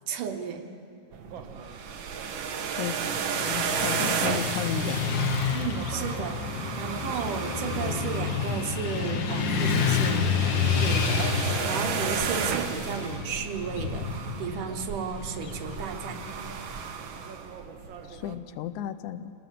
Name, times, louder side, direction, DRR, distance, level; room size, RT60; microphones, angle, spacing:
voice 1, 0.1-0.6 5.5-6.4 6.8-16.2, right 7 dB, 85° right, 5 dB, 2.8 m, -34 dB
sound 1, 1.1-18.3, right 6 dB, 60° right, 1.3 m, -34 dB
Motorcycle / Traffic noise roadway noise, 3.0-17.1, left 5 dB, 55° left, 1.4 m, -30 dB
voice 2, 3.5-5.0 18.1-19.3, left 10 dB, 80° left, 12 dB, 2.1 m, -33 dB
27.0 x 19.0 x 7.6 m, 2.7 s
omnidirectional pair, 3.6 m